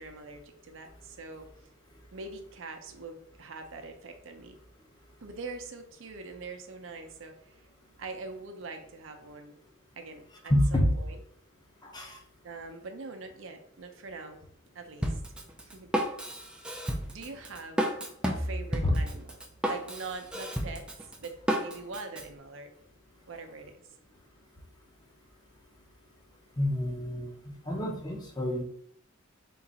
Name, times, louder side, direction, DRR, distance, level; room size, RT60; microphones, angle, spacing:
voice 1, 0.0-1.5 2.1-4.6 5.2-7.6 8.0-9.6 10.0-11.2 12.4-14.4 14.7-15.1 15.6-15.9 17.1-17.9 18.2-19.4 19.6-20.8 21.2-22.7 23.3-23.8, right 3 dB, 70° right, 5 dB, 0.6 m, -43 dB
voice 2, 10.5-11.0 11.8-12.2 18.8-19.0 26.6-27.3 27.7-28.6, left 1 dB, 20° left, 0 dB, 0.7 m, -27 dB
Drum kit, 15.0-22.2, equal, 5° right, 0.4 m, -32 dB
3.8 x 2.5 x 3.9 m, 0.66 s
head